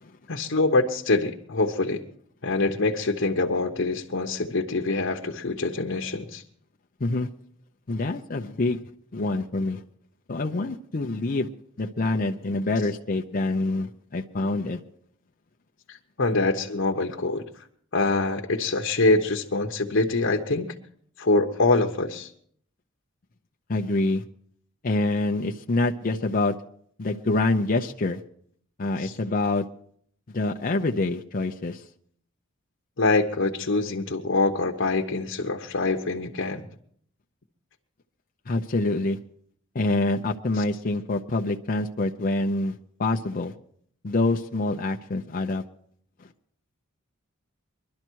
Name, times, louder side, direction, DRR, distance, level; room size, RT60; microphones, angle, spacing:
voice 1, 0.3-2.0 2.4-6.4 15.9-17.4 17.9-20.7 21.2-22.3 29.0-29.1 33.0-36.6 40.6-40.7, left 3 dB, 55° left, 1.0 m, -24 dB
voice 2, 7.9-8.8 9.1-9.8 10.3-11.5 11.8-14.8 23.7-24.2 24.8-26.5 27.0-28.2 28.8-29.6 30.3-31.8 38.5-39.2 39.7-43.5 44.0-45.6 46.2-46.3, left 2 dB, 40° left, 0.6 m, -26 dB
22.0 x 12.0 x 4.6 m
head